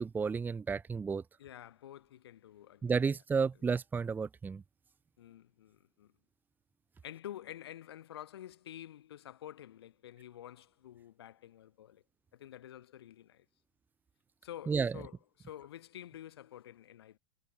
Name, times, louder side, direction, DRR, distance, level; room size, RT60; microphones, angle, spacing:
voice 1, 0.0-1.2 2.8-4.6 14.7-15.0, right 5 dB, 15° right, 1.2 m, -32 dB
voice 2, 1.4-3.0 5.2-6.1 7.0-12.0 12.3-13.4 14.4-17.2, left 11 dB, 80° left, 5.1 m, -49 dB
supercardioid pair, 130°, 13 cm